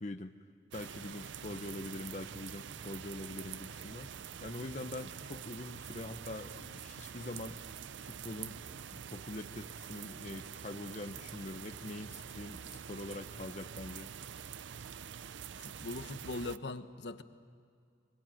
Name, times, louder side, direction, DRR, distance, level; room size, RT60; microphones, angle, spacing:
voice 1, 0.0-0.3 0.7-4.1 4.4-7.6 8.0-14.1, left 1 dB, 40° left, 6 dB, 0.8 m, -44 dB
sound 1, 0.7-16.6, right 8 dB, 85° right, 0.5 m, -46 dB
voice 2, 15.6-17.2, left 2 dB, 65° left, 10 dB, 1.1 m, -40 dB
24.5 x 21.5 x 9.1 m, 2.3 s
head